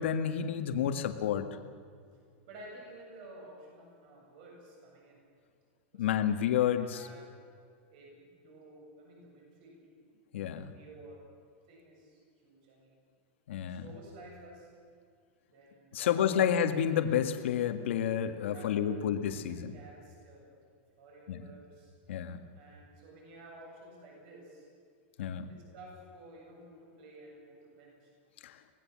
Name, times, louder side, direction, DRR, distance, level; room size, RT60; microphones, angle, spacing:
voice 1, 0.0-1.5 6.0-7.1 10.3-10.7 13.5-13.8 15.9-19.7 21.3-21.4 22.1-22.4 25.2-25.5 28.4-28.6, left 9 dB, 80° left, 7 dB, 1.8 m, -30 dB
voice 2, 2.5-5.2 5.9-7.3 7.9-9.9 10.7-11.2 11.7-12.9 13.7-14.7 15.5-16.6 18.5-19.1 19.7-20.5 21.0-21.9 22.5-24.7 25.5-28.1, right 2 dB, 45° right, -1 dB, 7.9 m, -52 dB
25.0 x 18.5 x 7.5 m, 2.2 s
supercardioid pair, 175°, 6 cm